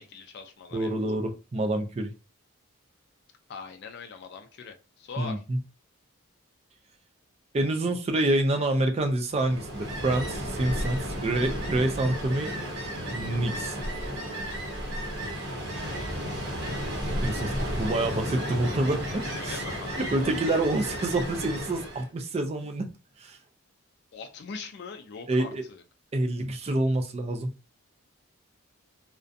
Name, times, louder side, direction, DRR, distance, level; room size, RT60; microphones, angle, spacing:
voice 1, 0.0-0.9 3.5-5.4 15.8-16.8 19.3-20.5 24.1-25.8, left 5 dB, 50° left, 0.3 m, -42 dB
voice 2, 0.7-2.1 5.2-5.6 7.5-12.7 13.1-13.8 17.2-19.6 20.0-22.9 23.2-23.4 25.3-25.6 26.1-27.5, right 2 dB, 30° right, 0.3 m, -27 dB
Ocean, 9.3-22.1, equal, 55° right, 0.8 m, -33 dB
2.5 x 2.1 x 2.5 m
head